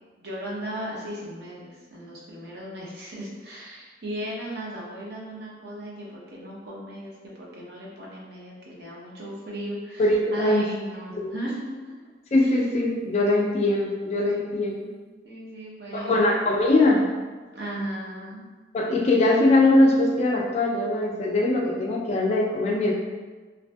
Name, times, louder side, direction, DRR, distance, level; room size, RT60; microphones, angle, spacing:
voice 1, 0.2-11.8 12.4-12.5 14.3-15.0 15.2-16.3 17.5-18.4, right 1 dB, 65° right, -5 dB, 0.7 m, -36 dB
voice 2, 10.0-10.7 11.2-11.3 12.3-14.7 15.9-17.1 18.7-22.9, left 2 dB, 35° left, -1 dB, 0.3 m, -21 dB
2.5 x 2.5 x 2.2 m, 1.3 s
head